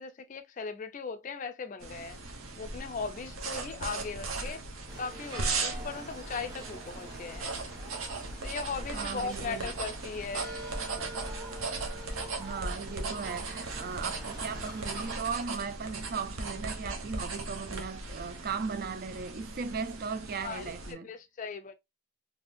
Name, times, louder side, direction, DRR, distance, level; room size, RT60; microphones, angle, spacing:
voice 1, 0.0-2.2 2.6-4.6 5.0-7.6 8.4-10.5 20.4-21.7, left 5 dB, 40° left, 0.4 m, -38 dB
sound 1, 1.8-20.9, right 3 dB, 85° right, 0.8 m, -38 dB
sound 2, 4.9-15.2, right 1 dB, 20° right, 1.2 m, -45 dB
voice 2, 8.9-9.7 12.4-21.1, right 5 dB, 45° right, 0.4 m, -37 dB
3.4 x 2.7 x 2.5 m
head